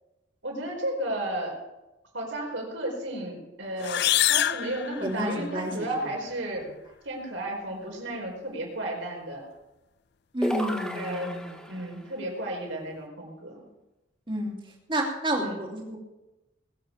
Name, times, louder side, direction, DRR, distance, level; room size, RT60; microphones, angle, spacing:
voice 1, 0.4-1.6 2.1-4.0 4.3-6.7 7.0-9.5 10.9-11.4 11.7-13.6 15.4-15.6, right 1 dB, 75° right, -1 dB, 4.9 m, -33 dB
sound 1, 3.8-5.6, left 13 dB, 60° left, 0.5 m, -26 dB
voice 2, 5.0-5.9 10.3-11.6 14.3-14.5 14.9-16.0, right 1 dB, 25° right, 0 dB, 2.7 m, -30 dB
sound 2, 10.4-12.0, equal, 5° left, 1.1 m, -33 dB
20.5 x 7.1 x 7.3 m, 1.0 s
head